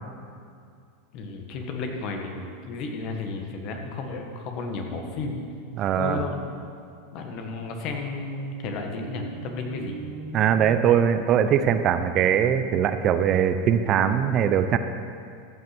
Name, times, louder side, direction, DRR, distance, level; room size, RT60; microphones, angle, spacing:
voice 1, 1.1-5.4 5.9-6.7 7.1-10.0, left 3 dB, 55° left, 3 dB, 1.6 m, -33 dB
voice 2, 5.7-6.2 10.3-14.8, right 9 dB, 45° right, 9 dB, 0.6 m, -21 dB
sound 1, 6.9-11.6, right 4 dB, 85° right, 1.1 m, -42 dB
14.0 x 5.8 x 6.0 m, 2.3 s
hypercardioid pair, 95°, 0 cm